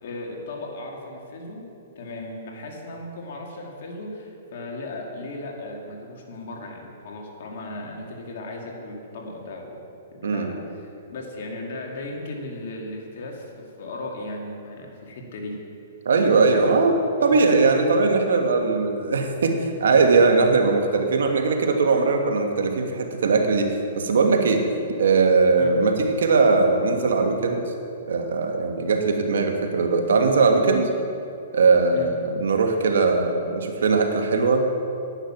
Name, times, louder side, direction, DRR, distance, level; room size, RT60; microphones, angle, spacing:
voice 1, 0.0-1.7 2.0-9.8 10.1-15.6 16.5-16.6 17.2-17.4 25.6-25.8 31.9-32.1, left 2 dB, 60° left, 0 dB, 2.5 m, -36 dB
voice 2, 16.0-16.9 17.2-24.6 25.0-27.6 28.1-30.9 31.5-34.6, right 4 dB, 80° right, 4 dB, 1.5 m, -20 dB
10.0 x 9.6 x 5.9 m, 2.6 s
hypercardioid pair, 145°, 0 cm